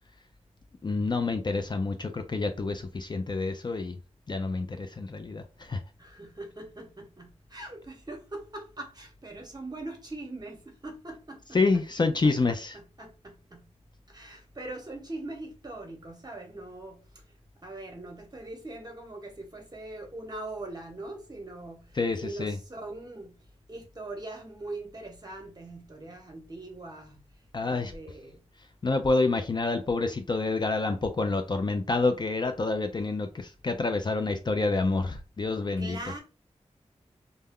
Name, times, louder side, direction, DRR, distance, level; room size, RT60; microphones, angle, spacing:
voice 1, 0.8-4.0 4.3-5.8 11.5-12.8 22.0-22.6 27.5-27.9 28.8-36.0, left 3 dB, 40° left, 0.4 m, -28 dB
voice 2, 6.0-11.4 11.7-11.8 12.2-13.7 14.1-23.4 23.7-27.2 27.6-28.4 35.8-36.2, right 2 dB, 35° right, 0.9 m, -42 dB
2.2 x 2.0 x 3.5 m
cardioid pair, 55°, 12 cm